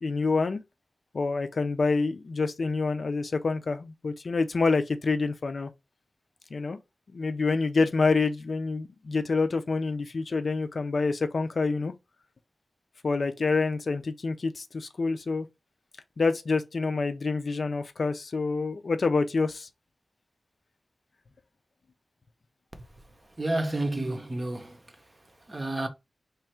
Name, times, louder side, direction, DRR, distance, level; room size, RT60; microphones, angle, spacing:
voice 1, 0.0-0.6 1.1-5.7 6.5-6.8 7.1-11.9 13.0-15.5 16.2-19.7, left 4 dB, 60° left, 0.4 m, -27 dB
voice 2, 23.4-24.8 25.5-25.9, right 2 dB, 30° right, 0.6 m, -30 dB
3.1 x 2.4 x 4.3 m
wide cardioid pair, 95°, 0 cm